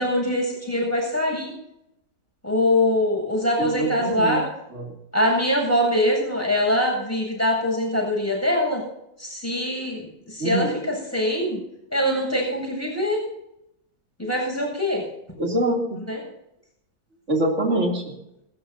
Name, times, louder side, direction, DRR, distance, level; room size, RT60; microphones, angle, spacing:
voice 1, 0.0-1.5 2.4-4.5 5.1-8.8 9.2-11.6 11.9-13.2 14.2-15.0 16.1-16.2, left 1 dB, 5° left, -2 dB, 7.9 m, -23 dB
voice 2, 3.6-4.4 4.7-4.9 10.4-10.7 15.4-16.0 17.3-18.0, right 1 dB, 40° right, 0 dB, 3.4 m, -24 dB
27.5 x 13.5 x 2.8 m, 0.84 s
omnidirectional pair, 2.0 m